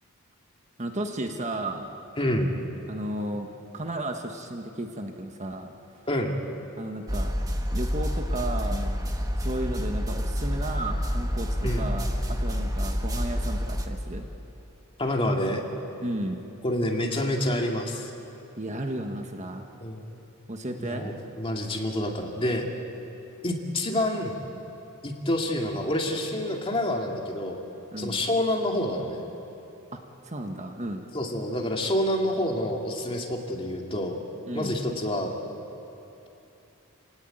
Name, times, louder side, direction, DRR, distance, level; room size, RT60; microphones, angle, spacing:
voice 1, 0.8-1.9 2.9-3.5 3.7-5.7 6.8-7.3 7.7-9.0 9.4-12.1 12.4-14.3 16.0-16.4 18.6-19.7 20.5-21.1 27.9-28.3 29.9-30.0 30.2-31.0 34.5-34.7, right 1 dB, 35° right, 4 dB, 1.4 m, -33 dB
voice 2, 2.2-2.5 6.1-6.4 11.6-11.9 15.0-15.6 16.6-18.1 19.8-20.2 20.8-22.7 23.4-24.4 25.0-27.6 28.0-29.2 31.1-34.2 34.5-35.3, left 1 dB, 25° left, 1 dB, 2.5 m, -28 dB
sound 1, 7.1-13.9, equal, 15° right, 1.6 m, -28 dB
28.0 x 18.5 x 9.0 m, 2.9 s
head